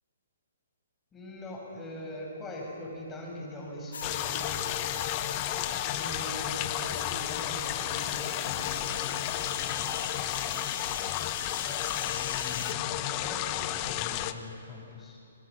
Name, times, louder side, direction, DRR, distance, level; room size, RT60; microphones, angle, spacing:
voice 1, 1.1-4.6 6.0-10.7 11.5-15.2, left 1 dB, 15° left, -2 dB, 6.0 m, -42 dB
sound 1, 3.9-12.7, left 7 dB, 65° left, 0.9 m, -39 dB
sound 2, 4.0-14.3, left 13 dB, 30° left, 0.9 m, -33 dB
26.0 x 20.5 x 7.1 m, 2.7 s
figure-of-eight pair, 130°, 0 cm